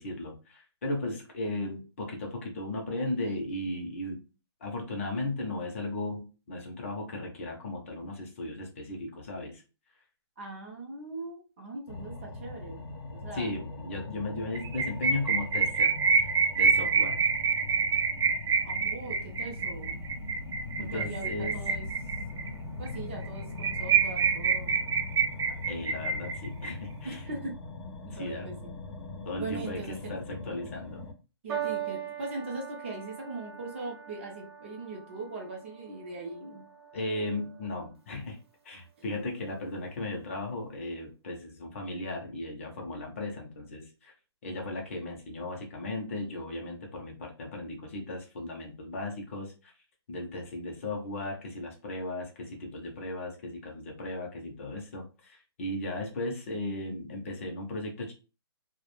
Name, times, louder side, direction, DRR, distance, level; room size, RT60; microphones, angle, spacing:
voice 1, 0.0-4.2 4.6-9.6 13.3-17.2 20.8-21.6 25.7-27.2 28.1-28.5 29.2-31.0 36.9-38.4 38.6-44.1 44.4-49.7 50.1-58.1, left 2 dB, 30° left, 1 dB, 0.6 m, -36 dB
voice 2, 10.4-12.9 13.1-13.5 18.6-20.0 20.8-21.9 22.8-24.8 27.0-27.6 28.0-28.6 29.4-30.1 31.4-36.6, right 3 dB, 25° right, 0 dB, 0.5 m, -40 dB
sound 1, 11.9-31.1, left 2 dB, 90° left, 0.6 m, -41 dB
sound 2, 14.6-22.5 22.9-23.0 23.2-23.3 23.6-26.7, right 5 dB, 90° right, 0.4 m, -26 dB
sound 3, 31.5-38.0 38.9-39.3, right 9 dB, 70° right, 0.8 m, -41 dB
2.2 x 2.1 x 3.0 m, 0.32 s
hypercardioid pair, 170°, 14 cm